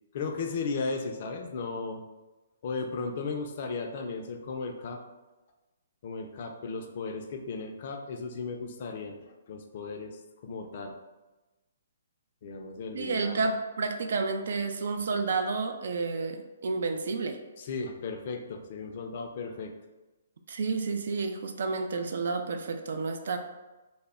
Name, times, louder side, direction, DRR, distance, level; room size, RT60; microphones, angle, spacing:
voice 1, 0.1-2.0 2.6-5.0 6.0-10.9 12.4-13.5 17.6-19.7, left 4 dB, 50° left, 4 dB, 0.4 m, -36 dB
voice 2, 12.9-17.4 20.5-23.4, right 4 dB, 65° right, 6 dB, 0.3 m, -30 dB
2.1 x 2.0 x 3.5 m, 1.1 s
hypercardioid pair, 140°, 0 cm